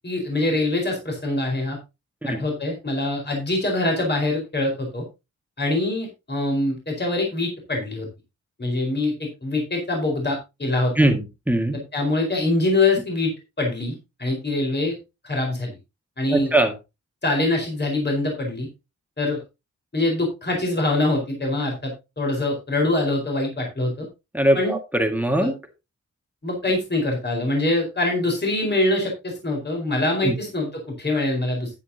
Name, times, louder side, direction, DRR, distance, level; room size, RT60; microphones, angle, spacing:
voice 1, 0.0-1.8 2.2-5.0 5.6-8.1 8.6-11.1 11.7-13.3 13.6-15.0 15.2-15.7 16.2-16.5 17.2-18.7 19.2-19.4 19.9-24.1 24.5-24.8 25.4-25.5 26.4-31.7, left 2 dB, 35° left, 1 dB, 4.6 m, -24 dB
voice 2, 11.0-11.8 16.3-16.7 24.3-25.5 30.2-30.3, right 1 dB, 5° right, 5 dB, 1.8 m, -21 dB
11.0 x 10.0 x 2.8 m, 0.25 s
wide cardioid pair, 85°, 30 cm